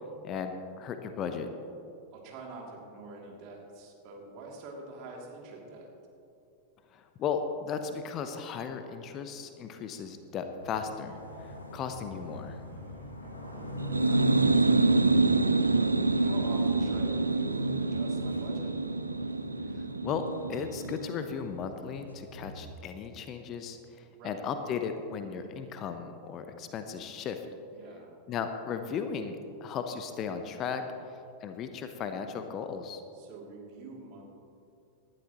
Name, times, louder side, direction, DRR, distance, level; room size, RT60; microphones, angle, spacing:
voice 1, 0.2-1.5 6.9-11.2 11.4-12.6 20.0-27.4 28.3-30.8 31.1-33.0, left 6 dB, 35° left, 7 dB, 0.9 m, -36 dB
voice 2, 2.1-5.9 12.5-15.7 16.1-18.8 24.1-24.4 27.7-28.2 33.1-34.2, right 3 dB, 40° right, -1 dB, 2.8 m, -46 dB
sound 1, 10.6-22.7, left 1 dB, 80° left, 1.6 m, -40 dB
sound 2, 13.8-21.3, right 3 dB, 80° right, 0.5 m, -26 dB
19.0 x 12.0 x 3.1 m, 2.7 s
figure-of-eight pair, 90°, 0 cm